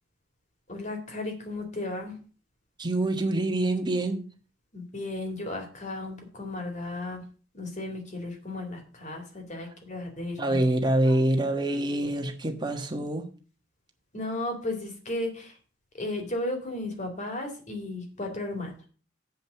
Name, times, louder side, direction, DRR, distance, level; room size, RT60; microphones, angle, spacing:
voice 1, 0.7-2.2 4.7-7.2 7.5-10.6 11.0-11.2 14.1-15.6 15.9-18.9, left 2 dB, 35° left, 4 dB, 2.4 m, -34 dB
voice 2, 2.8-4.2 10.4-13.2, right 1 dB, 20° right, 4 dB, 1.3 m, -26 dB
8.1 x 5.3 x 6.8 m, 0.39 s
head